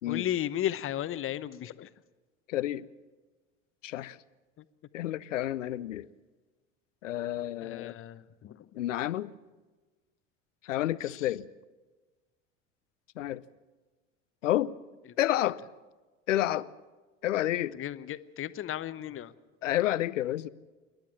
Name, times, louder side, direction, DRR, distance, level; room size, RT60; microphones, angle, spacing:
voice 1, 0.1-1.9 4.6-4.7 7.6-8.7 11.1-11.2 17.7-19.3, left 11 dB, 35° left, 0.9 m, -34 dB
voice 2, 2.5-2.9 3.8-4.2 4.9-6.1 7.0-7.9 8.7-9.3 10.6-11.5 13.2-13.4 14.4-14.7 15.2-15.6 16.3-16.7 17.2-17.8 19.6-20.5, left 13 dB, 75° left, 0.7 m, -29 dB
27.5 x 12.0 x 8.8 m
figure-of-eight pair, 70°, 38 cm